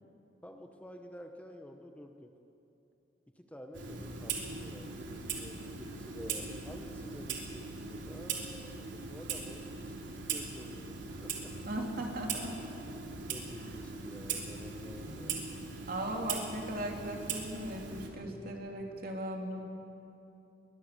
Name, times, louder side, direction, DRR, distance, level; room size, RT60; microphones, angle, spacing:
voice 1, 0.4-2.3 3.3-10.9 11.2-11.5 13.3-15.5, equal, 10° left, 4 dB, 1.0 m, -50 dB
Clock, 3.7-18.1, right 5 dB, 85° right, 3.3 m, -40 dB
voice 2, 11.6-12.5 15.9-19.6, right 1 dB, 55° right, 1 dB, 3.1 m, -38 dB
22.0 x 21.0 x 6.8 m, 2.8 s
head